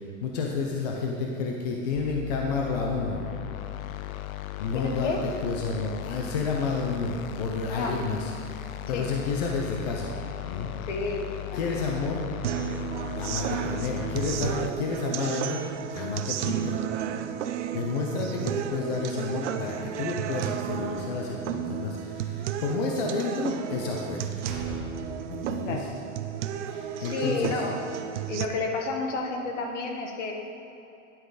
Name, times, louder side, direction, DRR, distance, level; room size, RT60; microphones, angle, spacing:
voice 1, 0.0-3.2 4.6-8.3 8.9-10.1 10.5-10.7 11.5-12.3 13.2-15.6 15.9-16.8 17.7-24.3 25.3-25.9 26.7-27.6, left 4 dB, 30° left, 0 dB, 0.6 m, -30 dB
sound 1, 2.0-14.7, left 13 dB, 85° left, 0.6 m, -37 dB
voice 2, 4.7-5.2 7.7-8.0 8.9-9.1 10.9-11.8 25.6-25.8 27.0-27.8 28.3-30.3, left 3 dB, 60° left, 2 dB, 1.5 m, -31 dB
sound 2, 12.4-28.5, right 10 dB, 60° right, 0.6 m, -33 dB
Slam, 21.0-21.6 23.7-23.9 24.4-25.6, equal, ahead, 0.9 m, -41 dB
10.5 x 8.1 x 4.0 m, 2.8 s
supercardioid pair, 180°, 40 cm